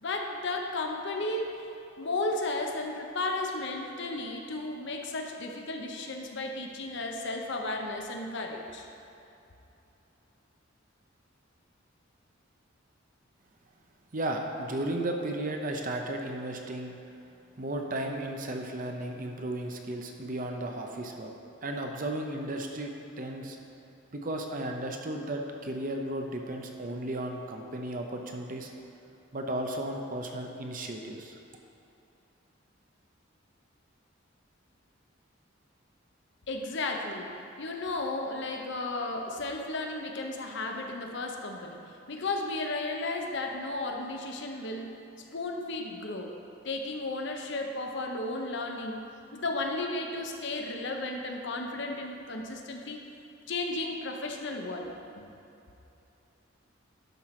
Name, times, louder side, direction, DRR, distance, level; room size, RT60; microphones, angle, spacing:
voice 1, 0.0-1.6 2.0-8.9 36.5-41.8 42.1-44.9 45.3-46.4 46.6-49.1 49.3-53.0 53.5-55.2, left 2 dB, 60° left, 2 dB, 0.9 m, -34 dB
voice 2, 14.1-17.0 17.6-21.3 21.6-23.6 24.1-28.7 29.3-31.4, right 1 dB, 45° right, 2 dB, 0.8 m, -34 dB
11.0 x 4.5 x 5.9 m, 2.8 s
head